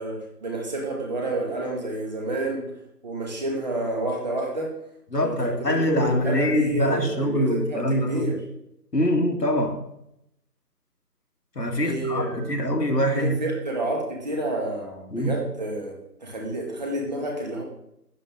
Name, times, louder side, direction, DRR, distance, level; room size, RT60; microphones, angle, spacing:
voice 1, 0.0-2.7 3.0-4.7 5.2-8.4 11.8-12.5 13.1-15.9 16.2-17.6, right 1 dB, 25° right, 2.2 m, -29 dB
voice 2, 5.1-8.3 8.9-9.8 11.6-13.5 15.1-15.4, equal, 80° left, 2.1 m, -24 dB
12.5 x 9.6 x 3.8 m
figure-of-eight pair, 155°, 48 cm